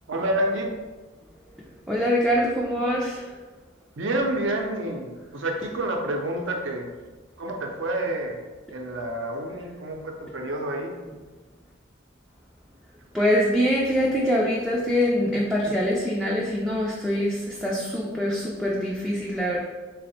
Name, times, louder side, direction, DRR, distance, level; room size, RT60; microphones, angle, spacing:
voice 1, 0.1-0.7 4.0-6.9 7.4-8.4 8.7-11.0 15.6-15.7, right 1 dB, 75° right, 2 dB, 0.5 m, -28 dB
voice 2, 1.9-3.3 13.1-19.6, equal, ahead, -5 dB, 0.3 m, -24 dB
3.5 x 2.0 x 4.1 m, 1.3 s
head